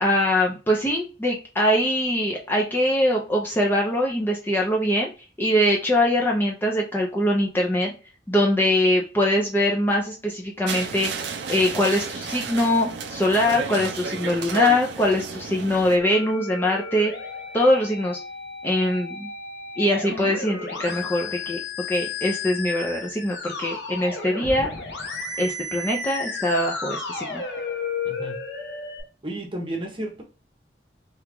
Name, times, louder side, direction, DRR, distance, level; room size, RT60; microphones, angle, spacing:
voice 1, 0.0-5.1 5.4-7.9 8.3-11.1 11.5-17.1 17.5-18.2 18.6-19.3 19.8-21.6 21.9-24.7 25.4-27.4, left 1 dB, 10° left, -1 dB, 0.5 m, -22 dB
sound 1, 10.7-16.0, right 5 dB, 65° right, 0.5 m, -32 dB
Musical instrument, 16.0-29.0, left 3 dB, 70° left, 0.9 m, -33 dB
voice 2, 28.0-28.4 29.2-30.2, right 1 dB, 30° right, 0 dB, 0.8 m, -32 dB
2.9 x 2.4 x 3.4 m, 0.33 s
head